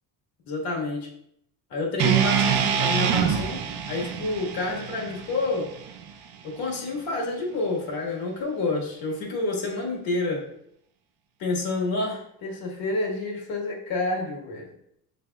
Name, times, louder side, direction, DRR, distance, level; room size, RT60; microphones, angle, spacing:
voice 1, 0.5-1.1 1.7-3.6 3.9-5.7 6.4-10.5 11.4-14.7, left 2 dB, 70° left, -1 dB, 1.5 m, -29 dB
sound 1, 2.0-6.2, right 8 dB, 85° right, 0.7 m, -25 dB
6.6 x 3.4 x 2.3 m, 0.71 s
cardioid pair, 130°, 37 cm